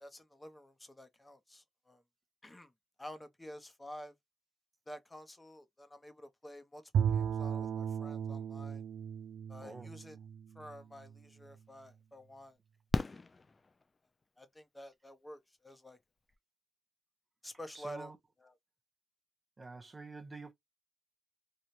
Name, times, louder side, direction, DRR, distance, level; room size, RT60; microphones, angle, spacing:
voice 1, 0.0-2.0 2.4-2.7 3.0-4.2 4.9-8.8 9.5-10.2 10.5-12.6 14.4-16.0 17.4-18.1 18.4-18.5, equal, 15° left, 0.8 m, -50 dB
Bowed string instrument, 6.9-11.2, right 8 dB, 85° right, 0.3 m, -35 dB
voice 2, 9.6-9.9 17.7-18.2 19.6-20.5, right 3 dB, 30° right, 0.7 m, -47 dB
Fireworks, 11.2-11.3 12.9-14.2 16.0-16.1 16.3-16.4, left 3 dB, 30° left, 0.3 m, -36 dB
3.1 x 2.3 x 2.6 m
cardioid pair, 90°, 0 cm